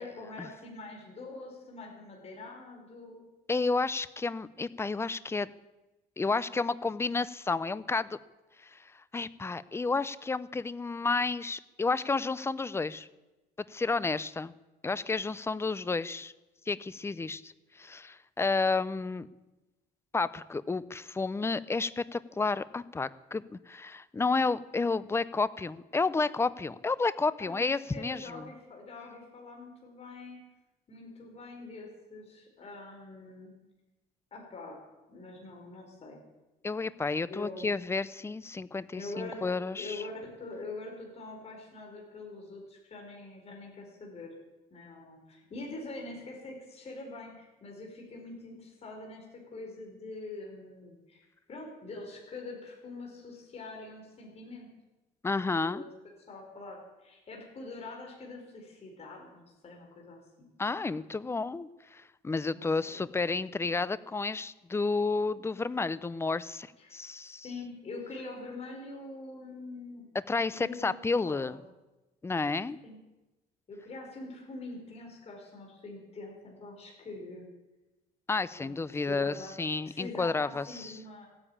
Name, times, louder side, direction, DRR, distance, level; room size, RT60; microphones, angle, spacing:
voice 1, 0.0-3.2 27.4-30.4 30.9-33.5 34.3-34.8 35.1-36.2 37.3-37.7 38.9-44.3 44.7-54.7 55.6-55.9 56.3-60.5 62.5-63.1 66.8-66.9 67.4-70.1 70.5-71.0 71.2-71.6 72.8-73.0 73.7-77.5 78.6-78.8 79.1-79.5 79.9-81.3, left 2 dB, 40° left, 0 dB, 4.6 m, -44 dB
voice 2, 3.5-5.5 6.2-8.2 8.6-13.1 13.7-14.5 14.8-16.3 16.7-19.3 20.1-28.5 36.6-40.0 55.2-55.8 60.6-67.5 70.3-71.6 72.2-72.8 78.3-80.9, left 3 dB, 15° left, 17 dB, 0.6 m, -31 dB
15.5 x 10.0 x 8.7 m, 1.1 s
cardioid pair, 110°, 17 cm